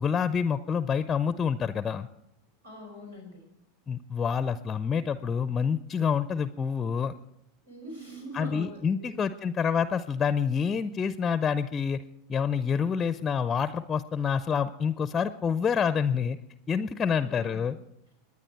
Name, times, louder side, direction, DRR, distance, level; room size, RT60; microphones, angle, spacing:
voice 1, 0.0-2.1 3.9-7.1 8.3-12.0 12.3-16.4 16.7-17.8, left 6 dB, 25° left, 14 dB, 0.5 m, -27 dB
voice 2, 2.6-3.4 7.7-9.1 17.2-17.6, equal, 85° right, 1 dB, 3.9 m, -42 dB
22.0 x 9.7 x 4.5 m, 0.82 s
figure-of-eight pair, 85°, 0 cm